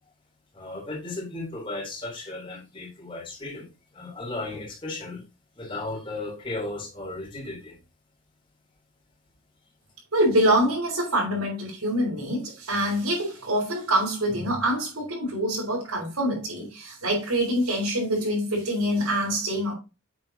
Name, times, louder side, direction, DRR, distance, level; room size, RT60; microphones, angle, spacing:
voice 1, 0.5-3.6 3.9-5.2 5.6-7.8, left 2 dB, 25° left, 3.5 m, -35 dB
voice 2, 10.1-19.7, right 1 dB, 85° right, 4.2 m, -25 dB
8.1 x 7.3 x 2.8 m
head